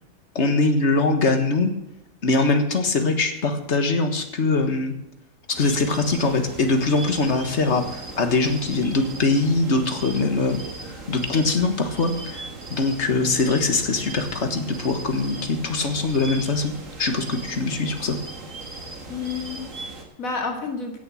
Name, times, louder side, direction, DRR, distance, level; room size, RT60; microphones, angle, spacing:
voice 1, 0.4-1.7 2.2-4.9 5.5-10.6 11.1-16.7 17.0-18.2, left 3 dB, 55° left, 7 dB, 1.7 m, -22 dB
sound 1, 5.5-20.0, right 2 dB, 70° right, 2.4 m, -38 dB
voice 2, 19.1-21.0, left 4 dB, 85° left, 3 dB, 2.6 m, -31 dB
16.0 x 7.1 x 6.2 m, 0.93 s
omnidirectional pair, 1.4 m